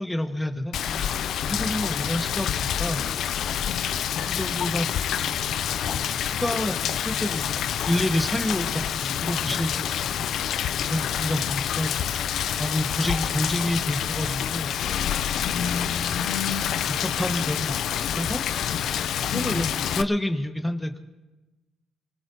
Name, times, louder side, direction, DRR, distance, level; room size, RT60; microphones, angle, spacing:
voice 1, 0.0-3.0 4.2-7.6 7.8-10.3 10.9-12.1 12.6-14.7 17.0-18.4 19.3-21.0, left 1 dB, 10° left, 5 dB, 1.6 m, -29 dB
Rain, 0.7-20.0, left 9 dB, 70° left, 0.5 m, -27 dB
voice 2, 15.4-16.9 19.3-19.7, left 6 dB, 85° left, 2 dB, 1.4 m, -32 dB
25.5 x 18.0 x 2.9 m, 1.1 s
supercardioid pair, 60°, 0 cm